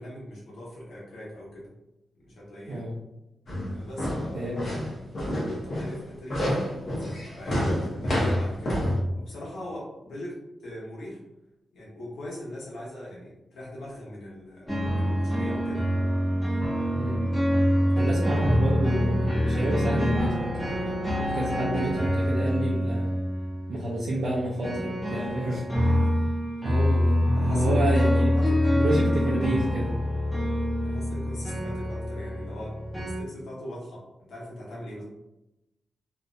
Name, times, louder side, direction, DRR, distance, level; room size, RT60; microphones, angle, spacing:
voice 1, 0.0-1.7 2.2-2.9 3.7-4.8 5.2-6.9 7.4-10.3 10.6-11.2 11.7-15.8 18.0-18.1 25.1-25.6 26.0-26.3 27.4-27.9 28.3-28.6 30.8-32.7 33.0-34.0 34.3-35.0, left 1 dB, 85° left, -5 dB, 0.9 m, -41 dB
sound 1, 3.5-9.0, equal, 40° left, 0.7 m, -28 dB
voice 2, 4.3-4.6 16.9-17.2 18.0-20.9 21.2-23.1 23.7-25.6 26.6-28.3 28.7-30.0, right 1 dB, 60° right, -6 dB, 0.5 m, -29 dB
sound 2, 14.7-33.2, equal, 5° left, 0.6 m, -25 dB
2.6 x 2.1 x 2.5 m, 0.95 s
wide cardioid pair, 175°, 0 cm